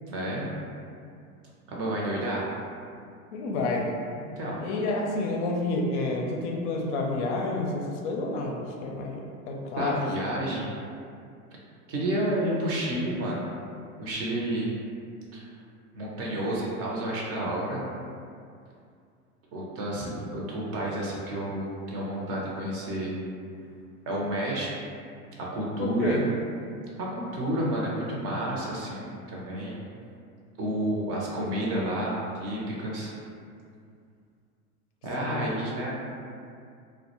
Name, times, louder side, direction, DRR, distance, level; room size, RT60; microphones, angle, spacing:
voice 1, 0.1-0.5 1.7-2.5 4.2-4.6 9.7-10.7 11.9-13.5 14.0-14.7 15.3-15.5 15.9-17.9 19.5-23.2 24.1-24.7 25.4-26.2 27.0-29.8 30.6-33.1 35.0-35.9, right 1 dB, 35° right, -4 dB, 0.5 m, -30 dB
voice 2, 3.3-3.9 4.6-10.0 25.8-26.3 35.2-35.5, left 2 dB, 55° left, 0 dB, 0.5 m, -29 dB
2.2 x 2.1 x 2.9 m, 2.3 s
hypercardioid pair, 100°, 43 cm